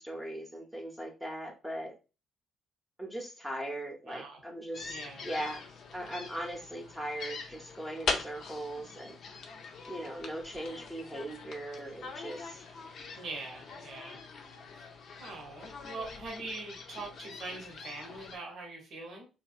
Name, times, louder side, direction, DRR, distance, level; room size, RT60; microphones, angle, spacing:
voice 1, 0.0-1.9 3.0-5.6 5.9-9.2 9.9-12.6, right 1 dB, 10° right, 0 dB, 0.7 m, -39 dB
voice 2, 4.0-4.4 4.9-5.3 13.2-14.2 14.7-14.9 15.2-19.3, right 3 dB, 55° right, 0 dB, 0.8 m, -43 dB
sound 1, 4.7-18.4, left 4 dB, 55° left, 0.4 m, -42 dB
2.6 x 2.2 x 2.3 m, 0.31 s
hypercardioid pair, 45°, 0 cm